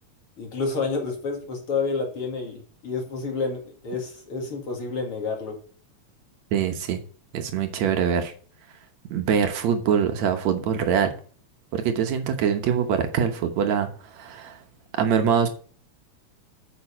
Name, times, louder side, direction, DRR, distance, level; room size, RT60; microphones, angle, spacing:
voice 1, 0.4-5.6, left 4 dB, 50° left, 1 dB, 3.0 m, -29 dB
voice 2, 6.5-7.0 7.3-8.3 9.1-11.1 11.7-14.6 15.0-15.5, right 7 dB, 70° right, 6 dB, 2.4 m, -23 dB
9.4 x 6.8 x 4.1 m, 0.43 s
omnidirectional pair, 3.3 m